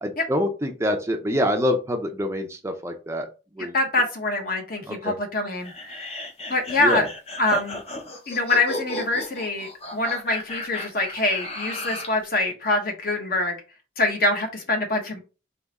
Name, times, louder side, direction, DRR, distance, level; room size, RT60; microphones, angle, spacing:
voice 1, 0.0-3.3 3.5-3.7 4.8-5.1 6.8-7.1, left 1 dB, 15° right, 4 dB, 0.5 m, -26 dB
voice 2, 3.7-6.1 6.5-7.0 7.4-7.8 8.3-13.6 14.0-15.2, left 2 dB, 50° left, 4 dB, 1.0 m, -25 dB
sound 1, 5.6-12.2, left 2 dB, 35° left, 0.7 m, -34 dB
3.6 x 3.0 x 4.0 m, 0.32 s
head